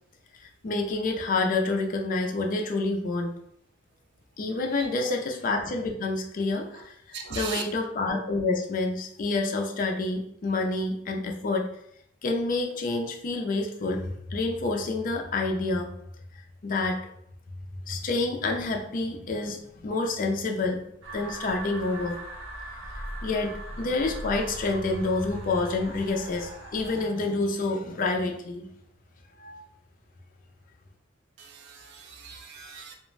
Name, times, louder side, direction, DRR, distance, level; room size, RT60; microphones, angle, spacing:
voice 1, 0.4-3.4 4.4-6.9 7.3-11.7 12.2-15.9 16.6-17.0 17.9-20.8 21.1-22.2 23.2-28.7 29.4-29.6, left 3 dB, 45° left, 2 dB, 0.4 m, -28 dB
voice 2, 4.8-5.1 7.1-7.6 31.4-32.9, right 4 dB, 60° right, 4 dB, 0.4 m, -38 dB
sound 1, 21.0-27.1, right 1 dB, 75° right, 0.9 m, -40 dB
2.4 x 2.1 x 3.1 m, 0.72 s
head